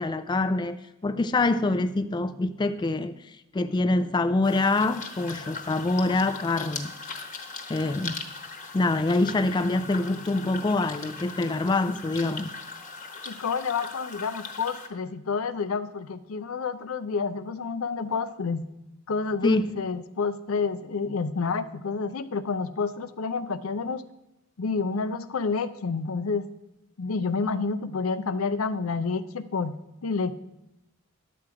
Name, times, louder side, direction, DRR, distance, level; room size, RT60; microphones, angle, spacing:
voice 1, 0.0-6.9 7.7-8.2 8.7-12.5 19.4-19.7, left 2 dB, 20° left, 0.3 m, -25 dB
sound 1, 4.4-14.9, left 4 dB, 40° left, 1.1 m, -39 dB
voice 2, 13.3-18.6 19.1-24.0 24.6-26.5 27.0-29.7 30.0-30.3, left 4 dB, 80° left, 0.6 m, -29 dB
11.0 x 7.7 x 4.8 m
head